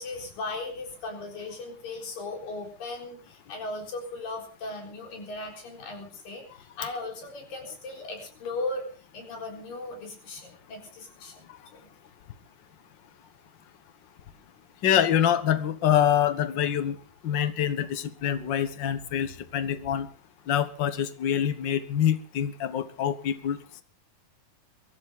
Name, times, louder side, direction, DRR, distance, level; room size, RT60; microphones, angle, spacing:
voice 1, 0.0-8.9 9.1-11.5 11.7-11.9, left 2 dB, 90° left, 1 dB, 5.8 m, -37 dB
voice 2, 14.8-17.0 17.2-20.1 20.5-23.6, left 9 dB, 60° left, 11 dB, 1.2 m, -25 dB
23.5 x 14.0 x 3.7 m, 0.38 s
omnidirectional pair, 3.9 m